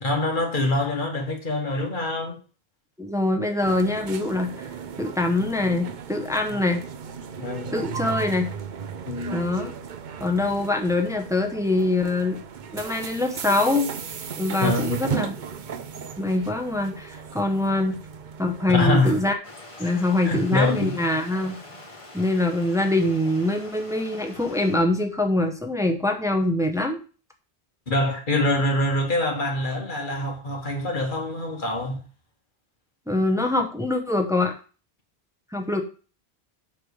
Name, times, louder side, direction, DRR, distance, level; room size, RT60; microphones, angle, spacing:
voice 1, 0.0-2.4 7.4-7.7 9.0-9.4 14.6-15.0 18.7-19.2 19.8-19.9 20.2-21.0 27.9-32.0, left 1 dB, 50° left, 1.8 m, -25 dB
voice 2, 3.0-4.7 5.0-6.8 7.7-8.5 9.3-9.7 10.2-12.4 12.7-13.9 14.4-15.3 16.2-18.0 18.4-19.4 19.8-21.6 22.1-27.0 33.1-34.5 35.5-35.8, left 2 dB, 5° right, 1.0 m, -24 dB
sound 1, 3.6-19.3, right 6 dB, 55° right, 0.7 m, -36 dB
Stream, 19.4-24.8, left 2 dB, 30° left, 1.7 m, -44 dB
7.9 x 3.6 x 6.5 m
omnidirectional pair, 1.0 m